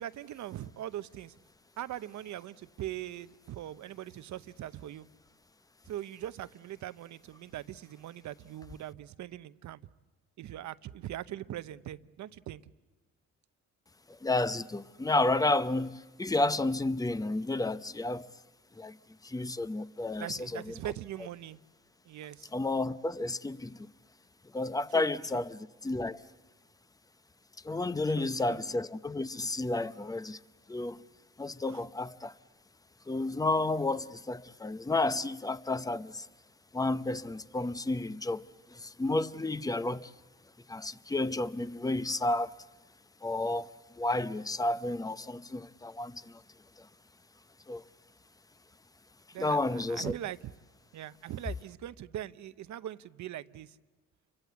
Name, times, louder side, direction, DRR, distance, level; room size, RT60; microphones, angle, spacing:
voice 1, 0.0-1.3 1.8-5.1 5.9-9.8 10.4-12.6 20.2-21.6 22.1-22.5 24.9-25.1 28.2-28.6 31.7-31.8 49.3-50.5 50.9-53.8, right 12 dB, 70° right, 0.8 m, -41 dB
voice 2, 14.1-18.3 18.8-19.0 19.2-20.7 22.5-23.9 24.5-26.2 27.6-30.4 30.7-31.0 31.4-32.3 33.1-36.3 36.7-40.1 40.7-42.6 43.2-43.7 44.0-46.4 47.7-47.8 49.4-50.1, left 2 dB, 10° left, 0.8 m, -31 dB
29.0 x 24.5 x 8.2 m
cardioid pair, 90°, 30 cm